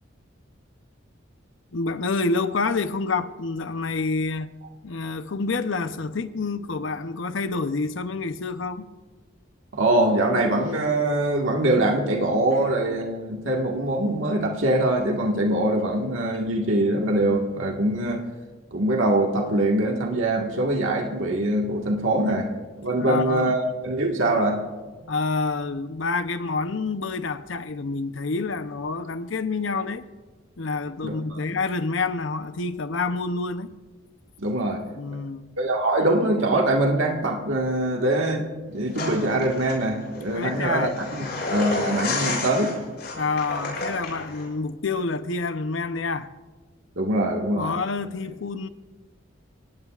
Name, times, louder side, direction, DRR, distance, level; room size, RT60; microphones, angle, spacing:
voice 1, 1.7-4.5 4.8-8.9 22.9-23.5 25.1-30.0 30.6-33.7 35.0-35.5 40.3-40.9 42.1-42.4 43.1-46.3 47.6-48.7, left 3 dB, 75° left, 0.7 m, -28 dB
voice 2, 9.7-18.2 18.7-22.5 22.8-24.6 31.0-31.4 34.4-34.8 35.6-42.9 46.9-47.7, right 1 dB, 85° right, 1.7 m, -23 dB
sound 1, 38.9-44.4, left 3 dB, 50° left, 5.9 m, -31 dB
28.5 x 17.5 x 2.4 m
head